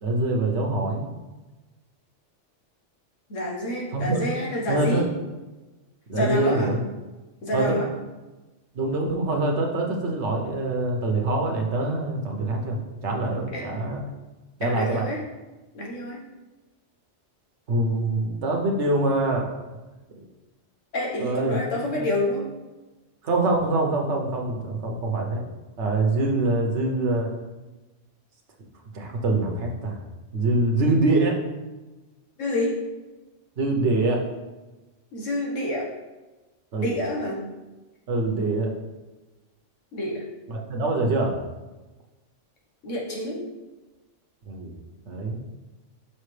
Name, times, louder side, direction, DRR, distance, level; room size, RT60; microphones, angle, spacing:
voice 1, 0.0-1.1 3.9-4.2 4.7-5.1 6.1-6.8 7.5-7.8 8.7-12.8 13.0-14.0 14.6-15.1 17.7-19.4 20.2-20.3 21.2-21.6 23.2-25.4 25.8-27.3 28.9-30.0 30.3-31.4 33.6-34.2 36.7-36.9 38.1-38.7 40.5-41.3 44.5-44.8 45.1-45.4, right 2 dB, 65° right, 1 dB, 1.2 m, -24 dB
voice 2, 3.3-5.1 6.1-6.8 7.4-7.9 13.5-13.7 14.6-15.2 15.7-16.3 20.9-22.5 32.4-32.8 35.1-35.9 36.8-37.4 39.9-40.3 42.8-43.4, left 1 dB, 85° left, -2 dB, 1.6 m, -28 dB
5.7 x 5.7 x 3.3 m, 1.2 s
omnidirectional pair, 1.3 m